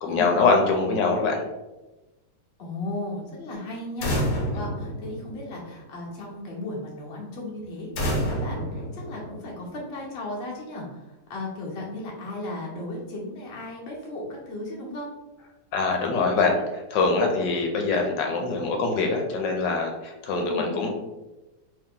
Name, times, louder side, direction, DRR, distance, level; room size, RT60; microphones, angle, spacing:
voice 1, 0.0-1.4 15.7-20.9, left 4 dB, 80° left, 2 dB, 1.2 m, -24 dB
voice 2, 2.6-8.0 8.4-15.1 20.4-20.7, left 1 dB, 40° left, -4 dB, 1.0 m, -35 dB
sound 1, 4.0-5.8 8.0-9.7, equal, 60° left, 1.4 m, -29 dB
3.1 x 2.8 x 3.6 m, 1.0 s
omnidirectional pair, 2.0 m